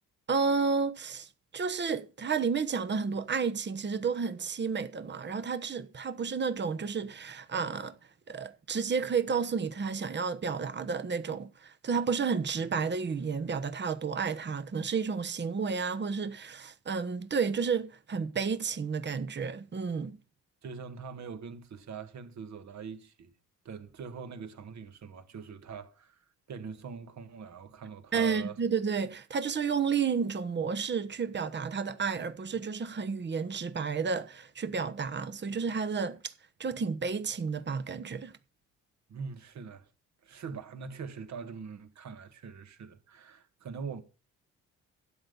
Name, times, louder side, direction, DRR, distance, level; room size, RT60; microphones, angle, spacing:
voice 1, 0.3-7.9 8.3-20.2 28.1-36.3 36.6-38.3, right 5 dB, 35° right, 1.2 m, -31 dB
voice 2, 20.6-23.3 23.7-28.6 39.1-39.9 40.2-44.0, right 6 dB, 55° right, 1.9 m, -43 dB
12.0 x 7.9 x 5.5 m
supercardioid pair, 60°, 33 cm